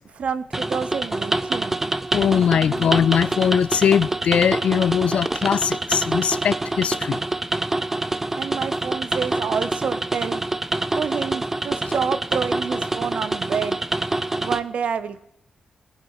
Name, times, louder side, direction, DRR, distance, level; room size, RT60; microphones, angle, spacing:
voice 1, 0.0-1.9 8.4-10.4 11.0-13.9 14.4-15.3, right 6 dB, 70° right, 0.7 m, -28 dB
sound 1, 0.5-14.6, right 2 dB, 15° right, 0.5 m, -26 dB
voice 2, 2.1-7.2, left 8 dB, 70° left, 0.3 m, -20 dB
19.5 x 7.3 x 4.8 m
wide cardioid pair, 130°, 2 cm